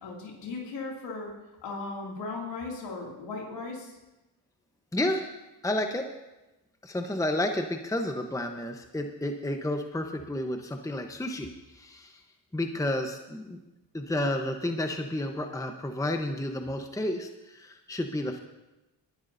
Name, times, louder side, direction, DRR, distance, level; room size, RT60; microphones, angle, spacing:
voice 1, 0.0-1.3 1.6-4.0, left 3 dB, 85° left, -2 dB, 2.7 m, -37 dB
voice 2, 4.9-5.3 5.6-6.1 6.8-12.2 12.5-13.6 13.9-18.4, left 1 dB, 10° left, 5 dB, 1.0 m, -31 dB
22.0 x 11.0 x 2.7 m, 1.0 s
supercardioid pair, 55°, 43 cm